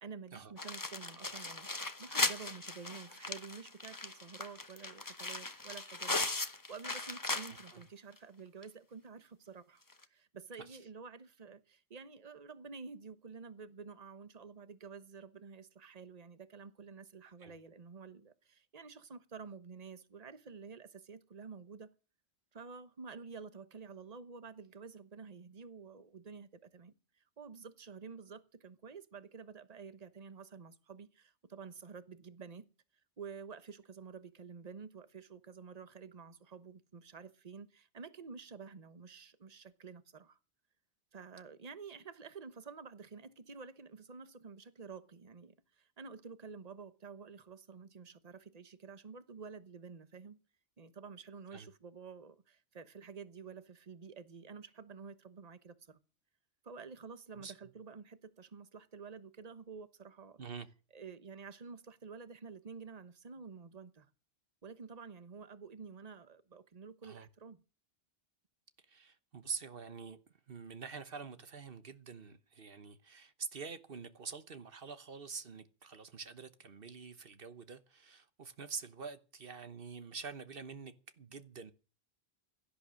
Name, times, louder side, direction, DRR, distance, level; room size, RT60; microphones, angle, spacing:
voice 1, 0.0-9.8 10.1-21.9 22.5-32.6 33.2-40.4 41.1-50.4 50.8-56.0 56.6-60.4 60.9-64.1 64.6-67.6, right 5 dB, 40° right, 1.2 m, -50 dB
sound 1, 0.6-7.8 8.2-8.3 8.6-8.7 9.9-10.0, left 2 dB, 20° left, 1.0 m, -38 dB
voice 2, 57.3-57.7 60.4-60.7 67.0-67.3 68.9-70.2 70.5-81.7, right 5 dB, 60° right, 1.3 m, -46 dB
16.5 x 12.0 x 6.4 m
omnidirectional pair, 1.1 m